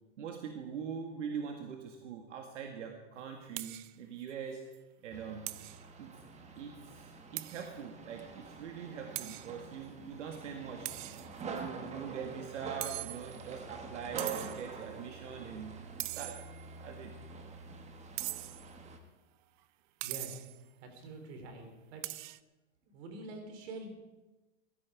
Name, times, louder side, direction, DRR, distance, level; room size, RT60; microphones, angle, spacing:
voice 1, 0.2-4.6 5.0-5.5 6.0-6.2 6.6-10.9 11.5-16.4 16.8-17.1, right 7 dB, 90° right, 4 dB, 1.8 m, -43 dB
sound 1, 3.6-3.9 4.3-4.4 4.7-4.8 5.5-5.8 7.4-7.7 8.2-8.3 9.1-9.5 10.8-11.6 12.8-13.5 14.2-14.7 16.0-16.7 18.2-18.7 20.0-20.6 22.0-22.4, right 19 dB, 45° right, 0.5 m, -41 dB
sound 2, 5.1-19.0, right 4 dB, 20° right, 1.3 m, -46 dB
voice 2, 20.0-20.5 20.8-22.1 22.8-23.9, right 2 dB, 60° right, 5 dB, 3.7 m, -46 dB
16.0 x 12.0 x 4.9 m, 1.1 s
supercardioid pair, 140°, 35 cm